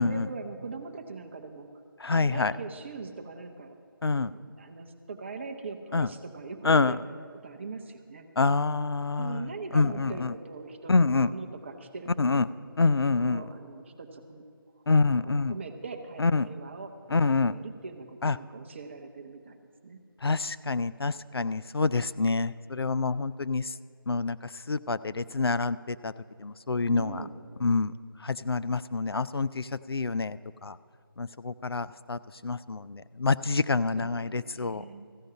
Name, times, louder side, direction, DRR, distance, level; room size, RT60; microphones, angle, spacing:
voice 1, 0.0-1.7 2.2-3.8 4.0-7.0 7.4-8.3 9.2-12.4 13.2-14.4 14.8-16.9 17.2-19.6 19.8-20.0 21.2-21.5 26.9-27.4 34.0-35.1, right 4 dB, 30° right, 6 dB, 0.8 m, -41 dB
voice 2, 2.0-2.5 4.0-4.3 5.9-6.1 6.6-7.0 8.4-9.4 9.7-10.3 10.9-11.3 12.2-12.5 12.8-13.4 14.9-15.6 16.2-16.5 17.1-17.5 18.2-18.4 20.2-23.6 24.1-24.4 24.7-26.1 26.4-27.2 27.6-27.9 28.2-30.7 31.2-34.8, left 4 dB, 85° left, 15 dB, 0.4 m, -26 dB
14.5 x 6.4 x 8.3 m, 2.2 s
figure-of-eight pair, 160°, 12 cm